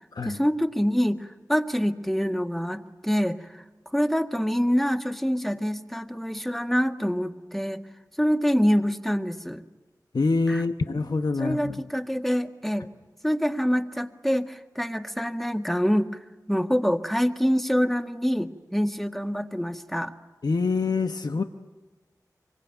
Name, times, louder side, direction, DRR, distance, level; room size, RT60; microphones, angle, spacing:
voice 1, 0.2-3.6 3.9-7.8 8.2-9.6 10.5-10.6 11.4-12.9 13.2-16.2 16.5-20.1, equal, 5° left, 6 dB, 1.8 m, -25 dB
voice 2, 10.1-11.8 20.4-21.4, left 3 dB, 75° left, 7 dB, 1.0 m, -25 dB
26.0 x 23.0 x 9.1 m, 1.2 s
wide cardioid pair, 55°, 7 cm